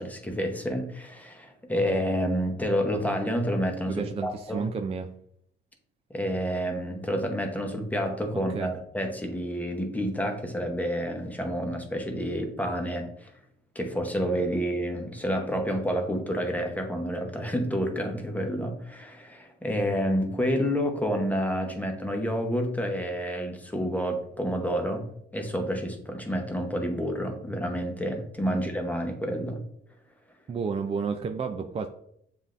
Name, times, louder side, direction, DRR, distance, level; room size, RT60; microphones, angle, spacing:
voice 1, 0.0-4.7 6.1-13.3 13.7-25.1 25.3-29.6, equal, 10° left, 4 dB, 0.9 m, -29 dB
voice 2, 3.8-5.1 8.3-8.7 28.5-28.6 30.5-31.9, right 5 dB, 30° right, 6 dB, 0.3 m, -31 dB
7.2 x 2.6 x 2.5 m, 0.71 s
cardioid pair, 90°, 20 cm